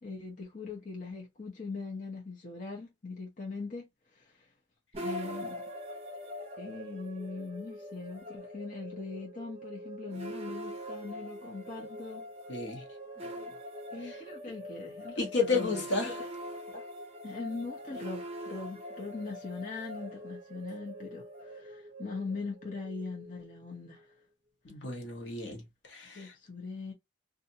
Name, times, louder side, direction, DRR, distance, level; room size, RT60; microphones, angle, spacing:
voice 1, 0.0-4.5 5.0-5.6 6.6-12.3 13.2-13.5 13.9-15.3 15.5-16.1 16.7-16.9 17.2-24.1 26.1-26.9, left 4 dB, 40° left, 0.7 m, -41 dB
sound 1, 4.9-24.1, equal, 30° right, 0.6 m, -43 dB
voice 2, 12.5-12.8 14.0-14.2 15.2-16.2 24.6-26.3, left 4 dB, 65° left, 0.9 m, -32 dB
2.6 x 2.5 x 2.7 m
head